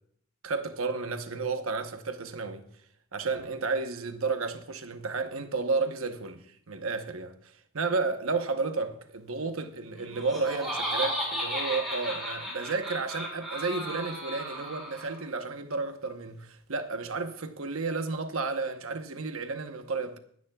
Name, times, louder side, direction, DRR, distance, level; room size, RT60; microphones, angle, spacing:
voice 1, 0.4-2.7 3.1-7.3 7.7-20.2, right 4 dB, 75° right, 1.0 m, -32 dB
Laughter, 10.0-15.2, equal, ahead, 5.0 m, -34 dB
23.5 x 9.5 x 2.4 m
head